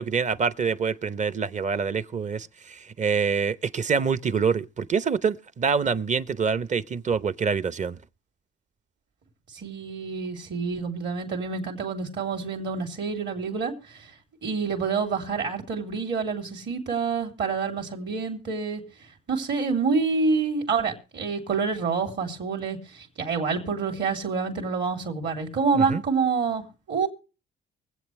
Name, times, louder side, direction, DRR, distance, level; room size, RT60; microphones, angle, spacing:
voice 1, 0.0-8.0 25.8-26.0, right 5 dB, 35° right, 0.8 m, -26 dB
voice 2, 9.5-13.7 14.4-18.8 19.3-27.1, right 5 dB, 60° right, 3.4 m, -27 dB
24.0 x 8.3 x 3.2 m
cardioid pair, 90°, 20 cm